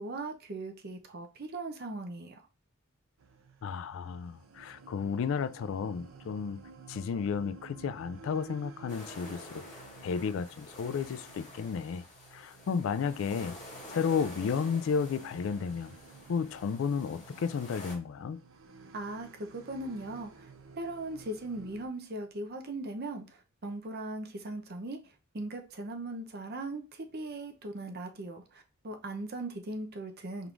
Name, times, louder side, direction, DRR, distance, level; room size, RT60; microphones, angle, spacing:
voice 1, 0.0-2.4 18.9-20.5 20.8-25.0 25.3-30.5, right 2 dB, 50° right, 0.7 m, -39 dB
sound 1, 3.2-21.9, right 4 dB, 85° right, 0.6 m, -53 dB
voice 2, 3.6-6.6 6.9-9.6 10.0-12.0 12.3-13.6 13.9-15.9 16.3-18.4, left 6 dB, 65° left, 0.3 m, -32 dB
sound 2, 8.9-17.9, left 1 dB, 40° left, 1.8 m, -49 dB
4.6 x 3.6 x 2.4 m
head